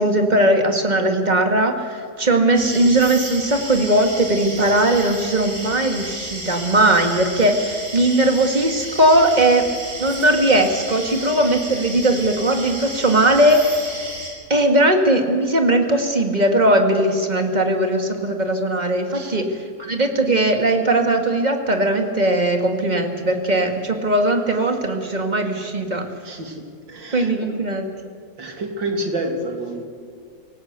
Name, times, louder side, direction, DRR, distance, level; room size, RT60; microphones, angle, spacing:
voice 1, 0.0-9.7 10.0-14.0 14.5-19.5 19.8-26.0 27.1-27.9, right 1 dB, 25° right, 4 dB, 2.3 m, -19 dB
sound 1, 2.6-14.3, right 1 dB, 45° right, 5.2 m, -33 dB
voice 2, 19.1-19.5 26.2-27.3 28.4-29.8, right 1 dB, 85° right, 4 dB, 3.2 m, -29 dB
26.5 x 17.5 x 8.3 m, 2.1 s
omnidirectional pair, 2.0 m